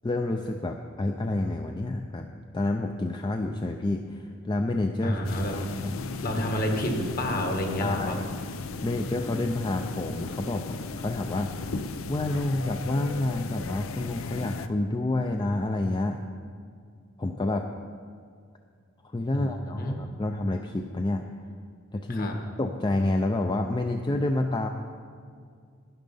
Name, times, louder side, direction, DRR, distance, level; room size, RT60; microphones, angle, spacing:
voice 1, 0.0-2.3 2.5-5.2 5.5-5.9 6.3-6.4 7.8-8.3 8.8-11.7 12.1-16.2 17.2-17.7 19.0-21.2 21.9-24.7, left 2 dB, 20° left, 4 dB, 0.4 m, -29 dB
voice 2, 5.0-5.6 6.2-8.2 19.3-20.0 22.1-22.3, equal, 45° left, 3 dB, 1.5 m, -29 dB
sound 1, 5.2-14.7, left 3 dB, 90° left, 0.6 m, -36 dB
11.5 x 10.5 x 5.4 m, 2.2 s
head